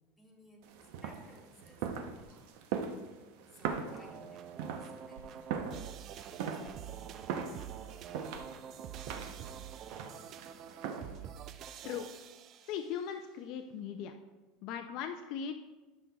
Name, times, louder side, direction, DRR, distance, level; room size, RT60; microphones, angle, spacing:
voice 1, 0.0-2.5 3.5-5.8 6.1-7.3 8.0-9.6, equal, ahead, -3 dB, 1.4 m, -60 dB
sound 1, 0.6-11.3, right 6 dB, 65° right, 0.7 m, -41 dB
sound 2, 2.2-2.4 2.8-2.9 3.6-3.9 4.4-4.5 5.1-5.4 6.0-6.1 6.6-6.9 7.2-7.3 7.7-7.8 8.3-8.9, right 3 dB, 80° right, 1.0 m, -55 dB
sound 3, 3.9-13.1, right 9 dB, 35° right, 0.4 m, -47 dB
voice 2, 12.7-14.1 14.6-15.6, left 8 dB, 50° left, 6 dB, 0.4 m, -39 dB
12.5 x 6.1 x 2.3 m, 1.2 s
supercardioid pair, 160°, 0 cm